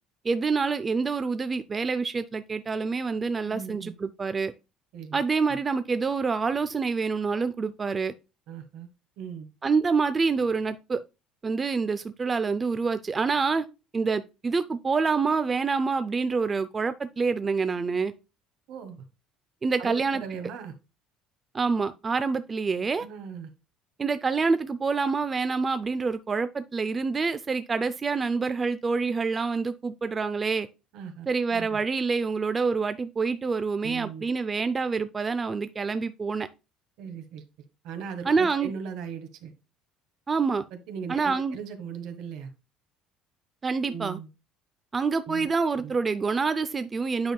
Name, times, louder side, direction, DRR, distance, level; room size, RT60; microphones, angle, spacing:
voice 1, 0.2-4.5 5.1-8.1 9.6-11.0 11.4-13.7 13.9-18.1 19.6-20.2 21.5-23.1 24.0-30.7 31.3-36.5 38.2-38.7 40.3-40.6 41.1-41.6 43.6-44.2 44.9-47.3, right 4 dB, 25° right, 0.4 m, -27 dB
voice 2, 3.4-3.9 4.9-5.2 5.5-5.6 8.5-8.9 9.2-9.5 18.7-19.0 19.8-20.7 23.0-23.5 30.9-31.3 31.5-31.8 33.8-34.2 37.0-37.4 37.8-39.5 40.9-42.5 43.8-44.3 45.3-45.5 45.8-45.9, right 7 dB, 70° right, 1.4 m, -38 dB
8.7 x 5.3 x 2.2 m
cardioid pair, 135°, 0 cm